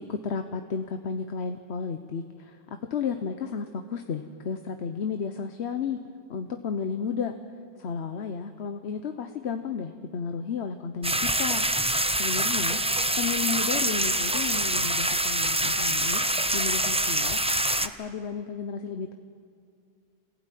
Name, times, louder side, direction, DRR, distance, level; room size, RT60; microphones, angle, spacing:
voice 1, 0.0-2.6 2.9-6.0 6.3-7.3 7.8-11.6 12.2-12.8 13.2-16.2 16.5-17.4 17.8-19.1, left 6 dB, 85° left, 7 dB, 1.1 m, -33 dB
sound 1, 11.0-17.9, right 1 dB, 10° right, 0.4 m, -25 dB
24.0 x 15.5 x 9.2 m, 2.4 s
omnidirectional pair, 1.1 m